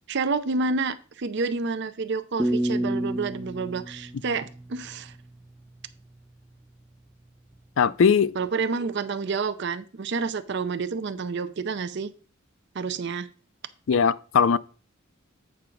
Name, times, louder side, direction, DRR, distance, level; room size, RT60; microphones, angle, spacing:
voice 1, 0.1-5.1 8.4-12.1 12.7-13.3, right 4 dB, 55° right, 0.5 m, -29 dB
sound 1, 2.4-5.4, right 1 dB, 5° right, 0.3 m, -29 dB
voice 2, 7.8-8.3 13.9-14.6, left 6 dB, 65° left, 0.4 m, -20 dB
8.6 x 5.7 x 3.8 m
head